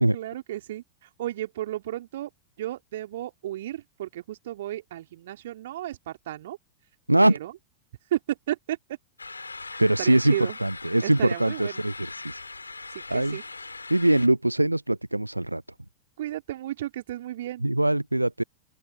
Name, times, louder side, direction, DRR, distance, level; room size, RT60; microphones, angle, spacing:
voice 1, 0.1-2.3 2.6-6.6 7.2-7.5 8.1-8.8 10.0-10.6 11.0-11.8 12.9-13.4 16.2-17.7, right 13 dB, 55° right, 3.5 m, -33 dB
sound 1, 9.2-14.3, left 3 dB, 80° left, 4.1 m, -40 dB
voice 2, 9.8-12.4 12.8-13.4 13.9-15.6 17.6-18.4, right 1 dB, 85° right, 0.5 m, -23 dB
open air
figure-of-eight pair, 90°, 0 cm